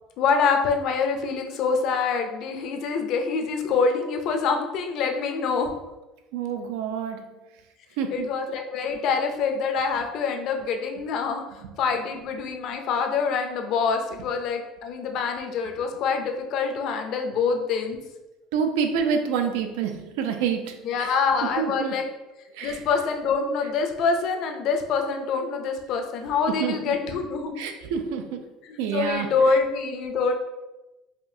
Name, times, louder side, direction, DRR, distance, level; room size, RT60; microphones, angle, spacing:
voice 1, 0.2-5.7 8.1-18.0 20.8-22.1 22.6-27.6 28.7-30.3, left 5 dB, 50° left, 4 dB, 0.5 m, -25 dB
voice 2, 6.3-7.3 8.0-8.3 11.6-11.7 18.5-22.0 22.5-22.8 26.5-27.0 27.6-28.5 28.8-29.3, right 7 dB, 90° right, 6 dB, 0.4 m, -28 dB
4.9 x 2.4 x 2.7 m, 1.0 s
cardioid pair, 155°, 0 cm